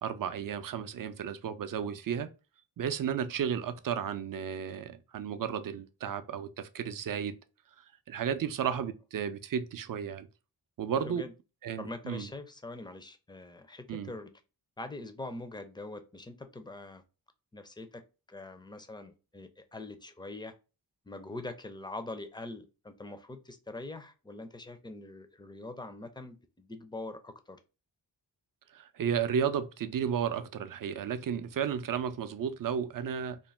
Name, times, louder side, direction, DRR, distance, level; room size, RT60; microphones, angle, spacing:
voice 1, 0.0-2.3 2.8-7.4 7.8-10.3 10.8-11.2 11.6-12.3 13.9-14.1 28.7-33.4, right 8 dB, 50° right, 0.5 m, -33 dB
voice 2, 11.0-11.3 11.8-14.3 14.8-17.0 17.5-18.0 18.3-20.5 21.1-27.6, left 2 dB, 10° left, 0.5 m, -43 dB
2.5 x 2.1 x 3.1 m
cardioid pair, 40°, 43 cm